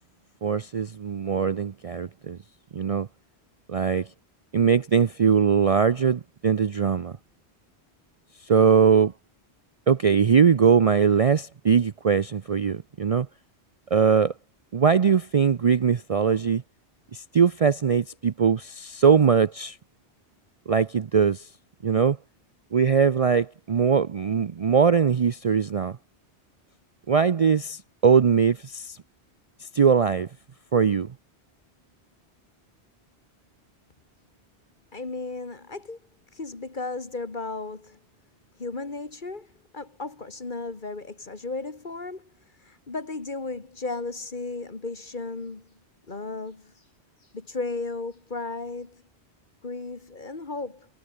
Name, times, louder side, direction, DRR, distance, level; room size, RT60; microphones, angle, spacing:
voice 1, 0.4-2.4 2.7-3.1 3.7-4.1 4.5-7.2 8.4-9.1 9.9-13.3 13.9-14.3 14.7-16.6 17.1-19.8 20.7-21.5 21.8-22.2 22.7-26.0 27.1-29.0 29.6-30.3 30.7-31.1, right 6 dB, 45° right, 0.5 m, -21 dB
voice 2, 34.9-36.0 36.3-38.0 38.6-39.5 39.7-42.3 42.6-45.7 46.1-46.7 47.3-49.0 49.6-50.9, left 3 dB, 45° left, 2.2 m, -35 dB
omnidirectional pair, 1.1 m